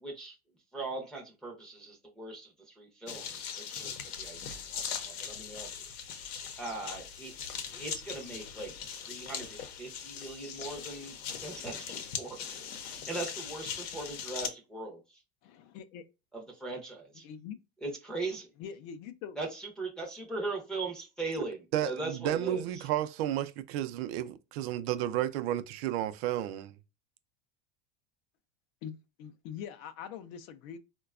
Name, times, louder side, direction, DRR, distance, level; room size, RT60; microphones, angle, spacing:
voice 1, 0.0-0.4 0.7-4.4 4.7-5.9 6.6-7.3 7.7-8.7 9.0-12.4 12.9-15.2 16.3-17.2 17.8-18.5 19.4-22.9, right 3 dB, ahead, 0.6 m, -40 dB
sound 1, 3.1-14.5, left 7 dB, 70° left, 0.7 m, -40 dB
voice 2, 15.4-16.0 17.2-17.6 18.6-19.4 28.8-30.8, left 8 dB, 45° left, 0.4 m, -43 dB
voice 3, 21.7-26.8, right 12 dB, 70° right, 0.5 m, -32 dB
3.9 x 2.2 x 2.3 m
supercardioid pair, 150°, 32 cm